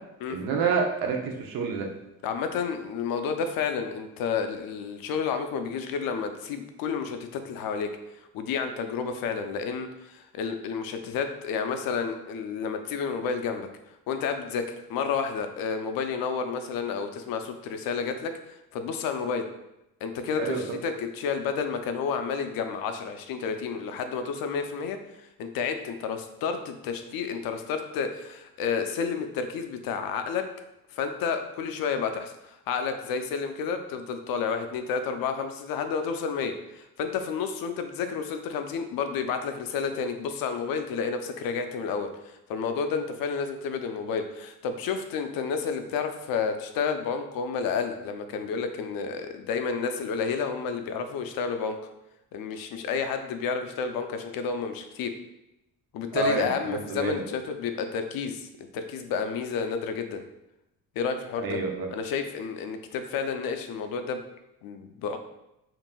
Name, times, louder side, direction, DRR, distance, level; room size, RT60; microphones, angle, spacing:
voice 1, 0.3-1.9 20.4-20.8 56.1-57.2 61.4-61.9, right 5 dB, 90° right, 2 dB, 0.8 m, -28 dB
voice 2, 2.2-7.9 8.3-13.7 14.1-18.4 18.7-19.5 20.0-25.0 25.4-30.5 30.9-51.8 52.3-55.1 55.9-60.2 61.0-61.6 61.9-64.2 64.6-65.2, left 6 dB, 80° left, 7 dB, 0.6 m, -30 dB
5.8 x 2.6 x 2.3 m, 0.89 s
cardioid pair, 130°, 35 cm